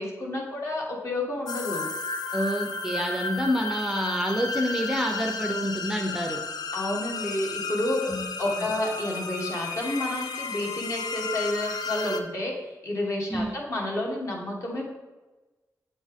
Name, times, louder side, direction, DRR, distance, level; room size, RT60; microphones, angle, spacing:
voice 1, 0.0-1.9 6.7-8.0 8.4-14.9, left 1 dB, 50° left, -1 dB, 1.4 m, -30 dB
sound 1, 1.5-12.2, left 4 dB, 90° left, 0.5 m, -33 dB
voice 2, 2.3-6.4 8.0-8.2 8.5-8.7 13.3-13.5, equal, 5° right, 2 dB, 0.5 m, -28 dB
7.6 x 4.2 x 3.5 m, 1.2 s
wide cardioid pair, 135°, 7 cm